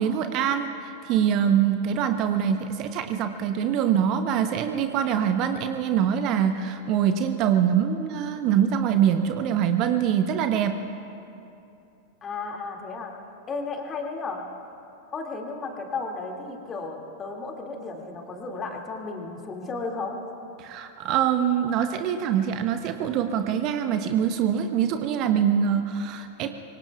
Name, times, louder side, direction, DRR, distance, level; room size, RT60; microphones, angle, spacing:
voice 1, 0.0-10.8 20.6-26.5, right 8 dB, 40° right, 8 dB, 0.8 m, -24 dB
voice 2, 12.2-13.1 13.5-14.4 15.1-20.2, left 3 dB, 25° left, 1 dB, 2.3 m, -34 dB
25.0 x 24.5 x 2.4 m, 2.7 s
figure-of-eight pair, 90°, 0 cm